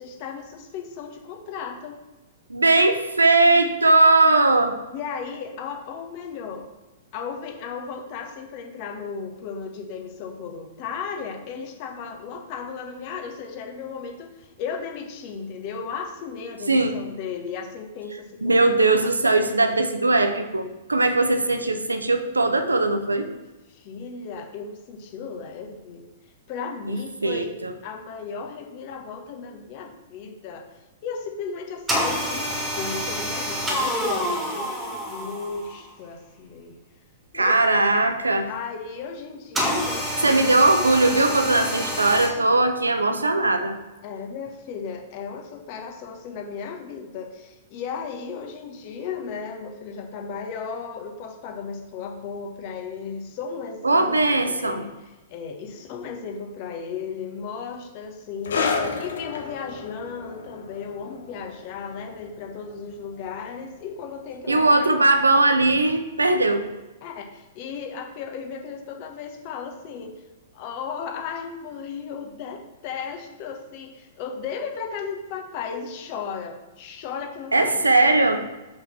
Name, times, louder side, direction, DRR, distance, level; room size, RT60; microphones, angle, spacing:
voice 1, 0.0-2.0 4.9-6.7 7.1-18.5 18.9-19.1 23.3-23.4 23.7-26.0 26.5-27.5 27.8-30.7 31.0-34.8 35.0-36.7 37.3-38.0 38.5-40.6 44.0-54.9 55.3-64.9 67.0-70.2 70.5-77.9, left 6 dB, 40° left, 3 dB, 1.4 m, -35 dB
voice 2, 2.5-4.8 16.7-17.0 18.4-23.3 26.9-27.7 37.3-38.5 40.2-43.8 53.8-54.9 64.5-66.7 77.5-78.4, right 2 dB, 80° right, 8 dB, 0.8 m, -19 dB
sound 1, 31.9-35.8 39.6-42.3, equal, 10° right, 1.9 m, -27 dB
sound 2, 58.4-65.4 65.7-65.9 66.7-66.8, left 5 dB, 60° left, 1.1 m, -33 dB
5.6 x 5.5 x 6.0 m, 1.1 s
figure-of-eight pair, 105°, 0 cm